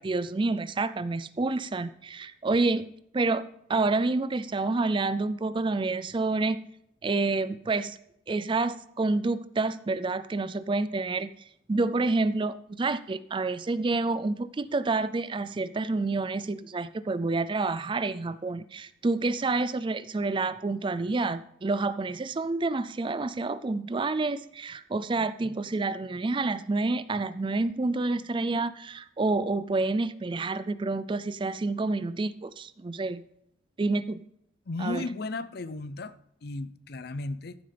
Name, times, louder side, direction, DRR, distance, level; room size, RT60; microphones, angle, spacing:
voice 1, 0.0-2.9 3.1-6.6 7.0-8.0 8.3-11.3 11.7-33.2 33.8-34.2 34.8-35.0, right 3 dB, 25° right, 15 dB, 0.4 m, -28 dB
voice 2, 34.7-36.1 36.4-37.6, left 2 dB, 55° left, 14 dB, 0.6 m, -34 dB
15.0 x 8.8 x 3.4 m, 0.74 s
head